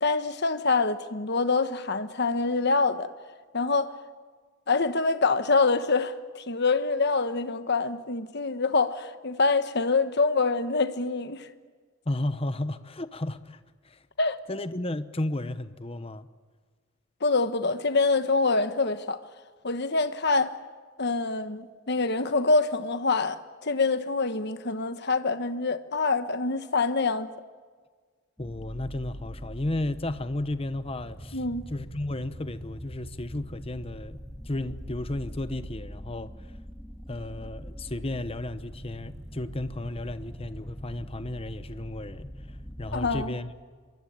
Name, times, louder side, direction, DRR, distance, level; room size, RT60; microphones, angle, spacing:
voice 1, 0.0-3.1 3.5-3.9 4.7-6.1 6.5-11.5 14.2-14.4 17.2-19.2 19.6-20.5 21.0-27.3 31.3-31.6 42.9-43.3, left 3 dB, 55° left, 1.3 m, -25 dB
voice 2, 12.1-13.6 13.8-14.0 14.5-16.3 28.4-34.2 34.4-36.5 37.1-43.5, left 1 dB, 25° left, 0.9 m, -33 dB
sound 1, 28.4-43.3, equal, ahead, 2.9 m, -42 dB
26.0 x 23.0 x 8.8 m
head